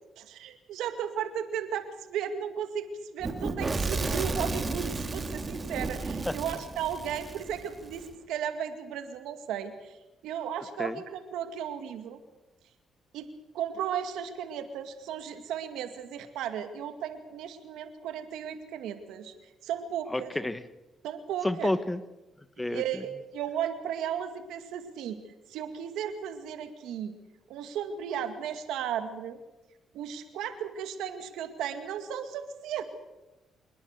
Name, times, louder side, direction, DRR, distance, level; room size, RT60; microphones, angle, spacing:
voice 1, 0.2-10.0 10.2-12.2 13.1-13.3 13.5-19.3 19.6-20.3 21.0-21.7 22.7-25.2 25.5-27.1 27.5-29.4 29.9-32.8, right 9 dB, 85° right, 8 dB, 2.2 m, -35 dB
Fire / Explosion, 3.2-8.1, right 3 dB, 30° right, 2.3 m, -33 dB
voice 2, 20.1-20.6 21.4-22.0 22.6-23.0, left 1 dB, 10° left, 13 dB, 1.4 m, -30 dB
26.5 x 19.5 x 6.7 m, 1.0 s
cardioid pair, 90°, 0 cm